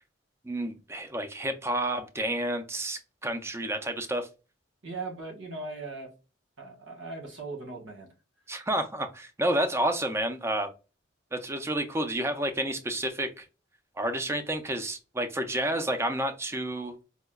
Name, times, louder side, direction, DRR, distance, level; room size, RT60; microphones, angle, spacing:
voice 1, 0.4-4.3 8.5-10.7 11.3-13.5 14.0-17.0, right 1 dB, 15° right, 8 dB, 0.4 m, -30 dB
voice 2, 4.8-6.1 6.6-8.1, right 3 dB, 80° right, 1 dB, 1.3 m, -39 dB
4.6 x 2.1 x 2.2 m, 0.31 s
head